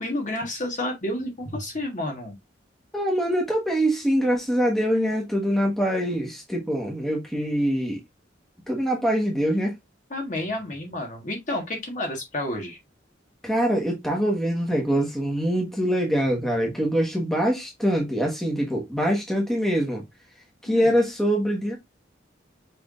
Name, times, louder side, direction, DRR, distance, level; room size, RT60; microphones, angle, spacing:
voice 1, 0.0-2.4 10.1-12.8 20.7-20.9, left 1 dB, 40° left, 1.5 m, -30 dB
voice 2, 2.9-8.0 8.7-9.7 13.4-20.0 20.6-21.8, equal, ahead, 1.3 m, -24 dB
6.0 x 3.3 x 2.5 m
head